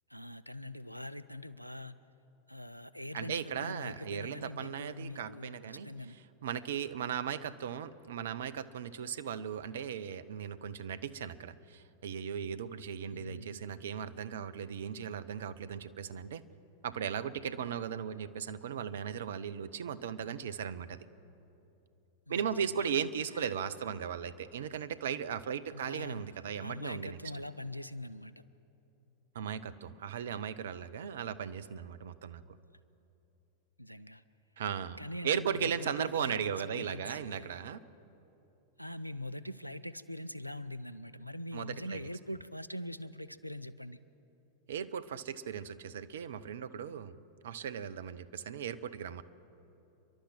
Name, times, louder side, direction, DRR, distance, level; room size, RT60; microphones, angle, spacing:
voice 1, 0.1-2.0 2.5-6.2 13.1-13.7 22.3-23.0 23.3-23.5 25.7-26.3 26.6-28.3 33.8-34.2 35.0-37.5 38.8-44.0, left 1 dB, 90° left, 15 dB, 0.5 m, -43 dB
voice 2, 3.1-5.9 6.4-16.4 16.8-21.1 22.3-27.2 29.3-32.4 34.6-35.0 35.2-37.8 41.5-42.0 44.7-49.2, right 8 dB, 60° right, 14 dB, 0.8 m, -37 dB
29.5 x 11.5 x 7.7 m, 2.9 s
figure-of-eight pair, 90°, 0 cm